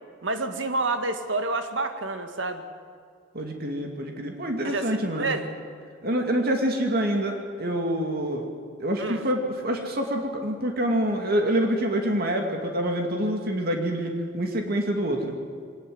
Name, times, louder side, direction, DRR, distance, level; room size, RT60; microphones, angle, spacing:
voice 1, 0.2-2.6 4.6-5.5 9.0-9.3, right 3 dB, 80° right, 7 dB, 2.0 m, -29 dB
voice 2, 3.3-5.3 6.0-8.5 8.8-15.3, equal, 55° right, 3 dB, 2.4 m, -26 dB
22.5 x 19.0 x 8.0 m, 2.1 s
head